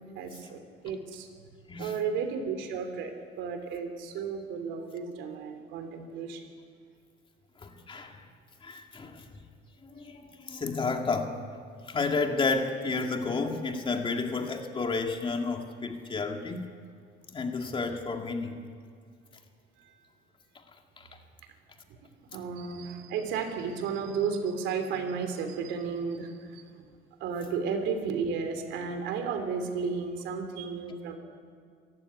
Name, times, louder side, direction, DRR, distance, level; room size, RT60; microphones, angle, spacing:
voice 1, 0.1-1.3 1.8-6.5 19.8-19.9 22.3-26.9 27.2-31.2, right 5 dB, 75° right, 7 dB, 3.3 m, -33 dB
voice 2, 7.6-8.2 8.6-9.3 9.8-16.6 17.3-18.5 20.5-20.6 21.0-21.1, left 4 dB, 25° left, 4 dB, 2.3 m, -31 dB
25.5 x 14.5 x 9.9 m, 2.1 s
cardioid pair, 125°, 19 cm